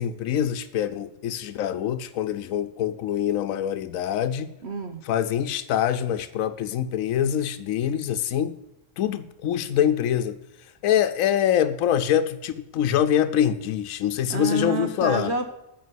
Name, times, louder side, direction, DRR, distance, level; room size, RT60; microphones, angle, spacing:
voice 1, 0.0-4.5 5.1-8.6 9.0-10.4 10.8-15.3, left 10 dB, 85° left, 10 dB, 1.1 m, -24 dB
voice 2, 4.6-5.0 14.3-15.4, right 3 dB, 55° right, 7 dB, 1.2 m, -28 dB
9.3 x 6.8 x 8.2 m, 0.88 s
omnidirectional pair, 1.4 m